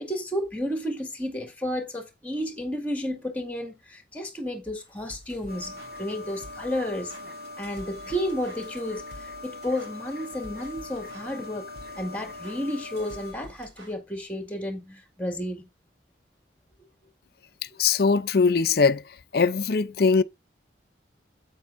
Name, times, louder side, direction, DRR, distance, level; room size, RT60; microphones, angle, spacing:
voice 1, 0.0-7.2 7.6-11.7 12.0-15.7, equal, 10° left, 2.0 m, -32 dB
sound 1, 4.8-13.9, equal, 90° right, 3.5 m, -50 dB
sound 2, 5.5-13.3, left 2 dB, 55° right, 2.5 m, -41 dB
voice 2, 17.8-19.0 19.3-20.2, left 5 dB, 55° left, 0.5 m, -21 dB
9.4 x 8.4 x 2.6 m
head